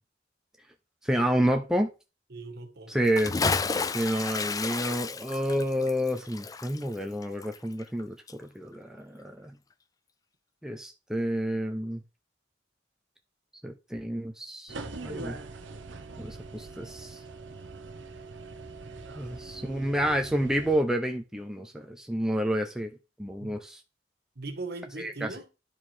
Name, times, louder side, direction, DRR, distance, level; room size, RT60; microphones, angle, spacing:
voice 1, 1.0-1.9 2.9-3.3 3.9-9.5 10.6-12.0 13.6-14.7 15.0-15.4 16.2-17.2 19.1-22.9 23.2-23.8 25.0-25.3, equal, 5° right, 0.7 m, -29 dB
voice 2, 2.3-3.0 19.1-19.9 23.4-23.6 24.3-25.5, right 2 dB, 60° right, 1.7 m, -40 dB
Bathtub (filling or washing) / Splash splatter, 3.0-8.0 8.3-8.4, left 4 dB, 20° left, 0.3 m, -31 dB
sound 1, 14.7-20.8, right 3 dB, 75° right, 1.0 m, -42 dB
10.5 x 4.7 x 4.5 m
head